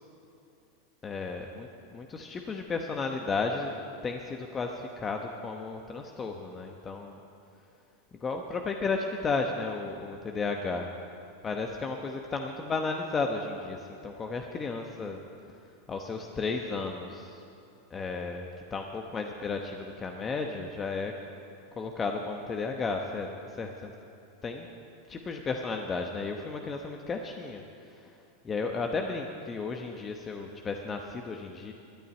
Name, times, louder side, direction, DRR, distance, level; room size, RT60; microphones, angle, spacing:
voice 1, 1.0-3.7 4.0-7.2 8.2-10.9 11.4-15.2 15.9-17.4 17.9-21.1 21.8-23.9 24.4-24.7 25.1-28.1 28.4-31.7, left 4 dB, 25° left, 3 dB, 1.0 m, -33 dB
12.5 x 8.5 x 9.3 m, 2.6 s
hypercardioid pair, 110°, 0 cm